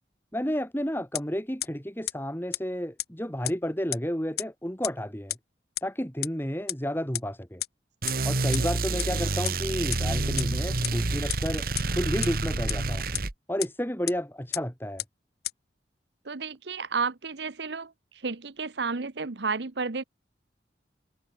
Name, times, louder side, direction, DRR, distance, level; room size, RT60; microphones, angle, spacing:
voice 1, 0.3-5.4 5.8-7.6 8.2-13.1 13.5-15.0, equal, 10° left, 4.0 m, -31 dB
sound 1, 1.1-1.2 1.6-1.7 2.1-2.2 2.5-2.6 3.0-3.1 3.4-3.5 3.9-4.0 4.4-4.5 4.8-4.9 5.3-5.4 5.8-5.9 6.2-6.3 6.7-6.8 7.1-7.2 7.6-7.7 8.1-8.2 8.5-8.6 9.0-9.1 9.4-9.5 9.9-10.0 10.4-10.5 10.8-10.9 11.3-11.4 11.8-11.9 12.2-12.3 12.7-12.8 13.1-13.2 13.6-13.7 14.1-14.2 14.5-14.6 15.0-15.1 15.4-15.5, left 15 dB, 60° left, 0.9 m, -29 dB
sound 2, 8.0-13.3, right 2 dB, 55° right, 1.7 m, -28 dB
voice 2, 16.3-17.9 18.2-20.0, right 4 dB, 75° right, 1.0 m, -31 dB
head